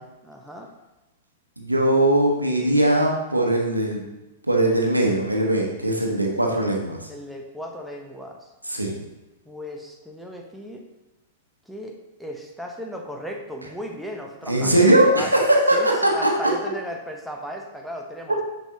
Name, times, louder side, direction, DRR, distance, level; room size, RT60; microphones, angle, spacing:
voice 1, 0.2-0.7 7.1-8.4 9.5-10.8 11.7-15.4 15.7-18.4, equal, ahead, 1 dB, 0.8 m, -36 dB
voice 2, 1.6-4.0 4.5-7.0 8.7-8.9 14.5-16.3, right 1 dB, 90° right, 0 dB, 1.0 m, -20 dB
7.1 x 5.4 x 2.8 m, 1.0 s
figure-of-eight pair, 100°, 0 cm